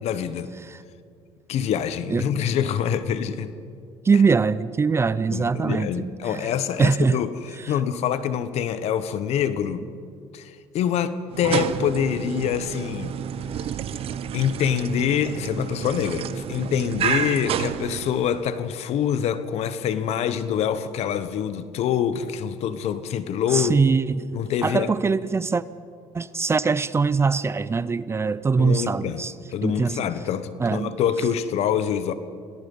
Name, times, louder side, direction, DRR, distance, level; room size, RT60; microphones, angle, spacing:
voice 1, 0.0-0.5 1.5-3.5 5.3-7.3 7.7-9.8 10.3-13.1 14.3-23.8 24.3-24.9 28.6-29.2 29.5-32.1, left 9 dB, 60° left, 1.2 m, -25 dB
voice 2, 4.0-6.5 6.8-7.2 7.6-7.7 23.5-25.6 26.1-29.3 29.6-30.0 30.6-30.9, right 4 dB, 20° right, 0.5 m, -22 dB
sound 1, 11.3-18.5, right 9 dB, 50° right, 1.0 m, -30 dB
27.0 x 18.0 x 5.5 m
cardioid pair, 105°, 12 cm